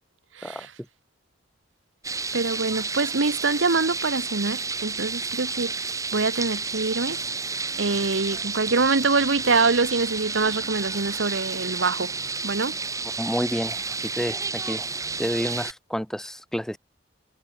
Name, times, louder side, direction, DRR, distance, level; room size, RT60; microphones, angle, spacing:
voice 1, 0.4-0.7 2.3-5.7 6.1-7.2 7.8-12.1 12.4-12.7, right 4 dB, 80° right, 1.2 m, -24 dB
sound 1, 2.0-15.7, right 4 dB, 20° right, 2.1 m, -31 dB
voice 2, 13.2-13.8 14.2-14.4 14.7-14.8 15.2-16.8, equal, 5° left, 0.5 m, -28 dB
head